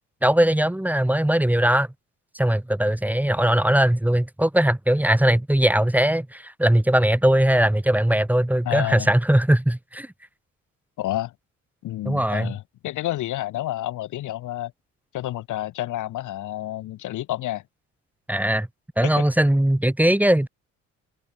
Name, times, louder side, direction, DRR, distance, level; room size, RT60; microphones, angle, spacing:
voice 1, 0.2-1.9 2.3-10.1 12.0-12.5 18.3-18.7 19.0-20.5, right 1 dB, 5° right, 1.5 m, -20 dB
voice 2, 8.6-9.1 11.0-11.3 11.8-14.7 15.1-17.6 19.0-19.2, left 14 dB, 80° left, 1.3 m, -29 dB
cardioid pair, 90°, 30 cm